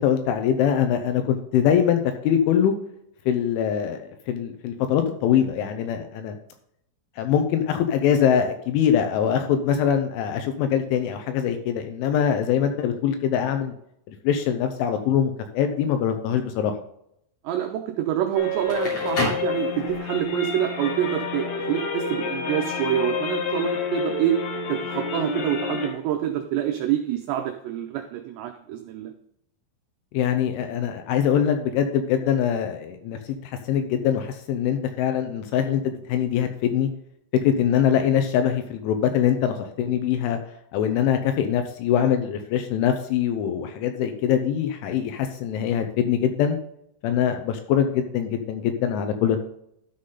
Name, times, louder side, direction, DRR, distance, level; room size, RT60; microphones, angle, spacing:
voice 1, 0.0-2.7 3.3-6.4 7.2-13.7 14.1-16.7 19.2-19.3 30.1-36.9 37.4-40.4 40.7-46.6 47.0-49.4, left 9 dB, 80° left, 6 dB, 3.0 m, -23 dB
voice 2, 17.4-24.4 24.7-29.1, right 11 dB, 85° right, 4 dB, 2.5 m, -26 dB
sound 1, 18.3-25.9, left 5 dB, 65° left, 3.3 m, -29 dB
Crackle, 18.5-20.2, left 2 dB, 35° left, 3.4 m, -31 dB
13.0 x 5.7 x 3.9 m, 0.74 s
omnidirectional pair, 5.9 m